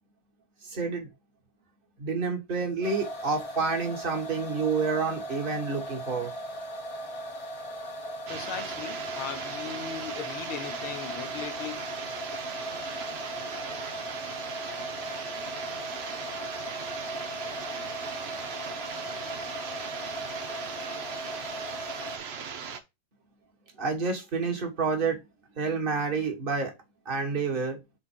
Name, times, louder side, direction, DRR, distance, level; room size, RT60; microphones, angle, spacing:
voice 1, 0.7-1.1 2.0-6.3 23.8-25.2 25.6-26.7 27.0-27.8, right 4 dB, 30° right, 1.4 m, -29 dB
sound 1, 2.8-22.2, equal, 30° left, 0.6 m, -38 dB
voice 2, 8.3-11.8, left 7 dB, 85° left, 2.0 m, -38 dB
sound 2, 8.3-22.8, right 6 dB, 75° right, 0.5 m, -38 dB
5.7 x 3.9 x 4.4 m
omnidirectional pair, 2.3 m